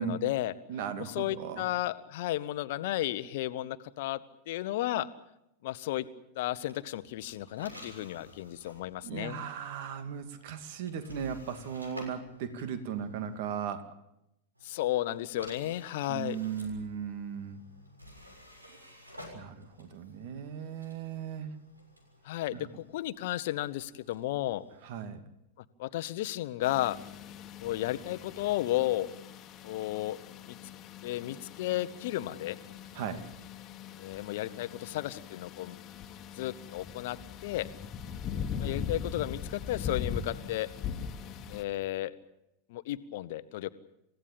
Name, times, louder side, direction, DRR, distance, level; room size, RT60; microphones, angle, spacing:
voice 1, 0.0-0.5 1.1-5.1 5.6-6.1 6.3-9.4 14.6-16.4 22.2-24.6 25.8-27.0 27.6-29.1 29.6-30.2 30.5-30.6 31.0-32.6 34.0-35.8 36.3-37.7 38.6-40.7 41.5-42.1 42.7-43.7, left 15 dB, 50° left, 14 dB, 1.1 m, -33 dB
voice 2, 0.7-1.7 9.0-13.9 16.1-17.6 19.3-21.5 22.5-22.7 24.8-25.2 32.9-33.3, right 7 dB, 50° right, 9 dB, 2.4 m, -37 dB
sound 1, 6.6-13.5 14.5-25.1, left 1 dB, 80° right, 6.8 m, -52 dB
sound 2, 26.6-41.6, left 7 dB, 30° left, 1.7 m, -41 dB
28.0 x 16.5 x 8.7 m, 0.86 s
figure-of-eight pair, 90°, 0 cm